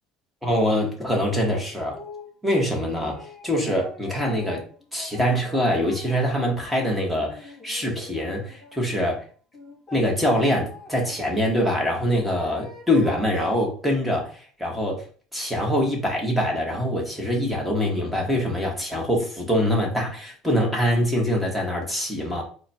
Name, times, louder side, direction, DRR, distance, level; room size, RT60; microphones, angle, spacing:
voice 1, 0.4-2.0 2.4-4.6 4.9-9.2 9.9-15.0 15.3-22.4, equal, ahead, -1 dB, 1.2 m, -24 dB
sound 1, 1.9-2.3 2.8-6.8 7.3-8.8 9.5-11.2 12.0-13.7, left 2 dB, 15° left, 1.6 m, -43 dB
4.0 x 2.2 x 4.2 m, 0.42 s
cardioid pair, 150°, 0 cm